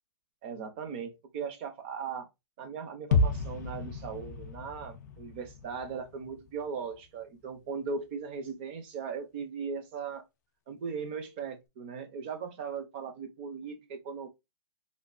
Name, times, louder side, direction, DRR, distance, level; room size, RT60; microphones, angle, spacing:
voice 1, 0.4-2.3 2.6-10.2 10.7-14.3, right 6 dB, 20° right, 0.4 m, -38 dB
sound 1, 3.1-7.0 7.4-7.5, left 3 dB, 40° left, 0.4 m, -32 dB
3.1 x 2.3 x 2.3 m
hypercardioid pair, 175°, 14 cm